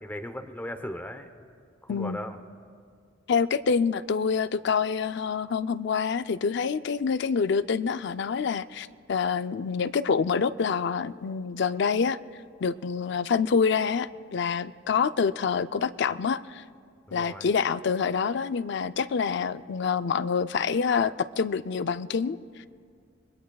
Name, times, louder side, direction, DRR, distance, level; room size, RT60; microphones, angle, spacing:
voice 1, 0.0-1.3 1.8-2.4 17.1-17.5, equal, 10° left, 6 dB, 0.8 m, -37 dB
voice 2, 3.3-12.2 12.6-16.6 17.1-22.4, left 5 dB, 65° left, 13 dB, 0.4 m, -26 dB
29.0 x 21.5 x 2.4 m, 2.2 s
head